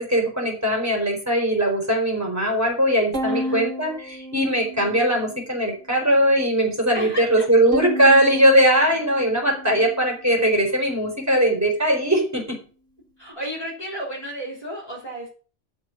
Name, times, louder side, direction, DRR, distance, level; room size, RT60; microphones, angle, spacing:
voice 1, 0.0-12.6, right 1 dB, 15° right, 0 dB, 4.4 m, -20 dB
Bowed string instrument, 3.1-5.5 6.0-6.7 7.7-10.2, right 1 dB, 75° right, 2.8 m, -33 dB
voice 2, 3.3-3.7 6.9-7.5 13.2-15.3, equal, 25° left, -4 dB, 3.8 m, -33 dB
12.0 x 5.8 x 6.2 m, 0.38 s
omnidirectional pair, 1.2 m